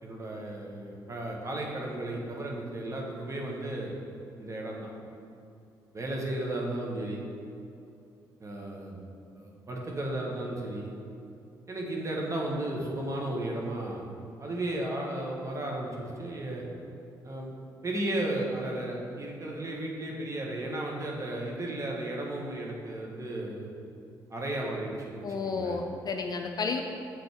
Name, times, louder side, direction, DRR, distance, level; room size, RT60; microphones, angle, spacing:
voice 1, 0.0-3.9 4.4-4.9 5.9-7.2 8.4-9.0 9.3-10.9 11.7-14.1 14.4-16.6 17.2-17.5 17.8-23.7 24.3-25.8, right 1 dB, 30° right, -2 dB, 1.2 m, -34 dB
voice 2, 25.2-26.8, left 4 dB, 35° left, 4 dB, 0.4 m, -31 dB
7.3 x 4.0 x 3.5 m, 2.6 s
figure-of-eight pair, 40°, 11 cm